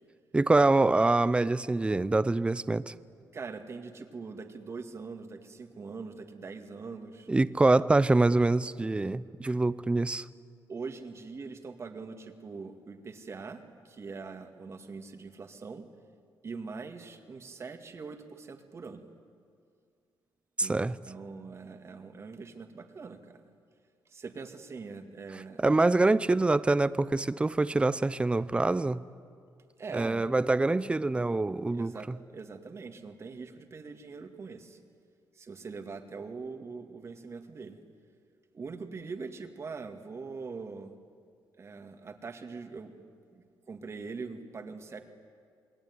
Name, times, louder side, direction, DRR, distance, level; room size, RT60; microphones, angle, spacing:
voice 1, 0.3-2.9 7.3-10.2 20.6-20.9 25.6-29.0 29.9-31.9, right 2 dB, 15° right, 17 dB, 0.6 m, -25 dB
voice 2, 3.3-7.3 10.7-15.9 16.4-19.0 20.6-20.8 21.1-23.4 24.1-25.6 29.8-30.3 31.7-34.8 35.4-37.8 38.5-40.9 41.6-43.0 43.3-45.0, right 4 dB, 35° right, 6 dB, 2.2 m, -42 dB
27.5 x 21.0 x 9.7 m, 2.3 s
cardioid pair, 120°, 8 cm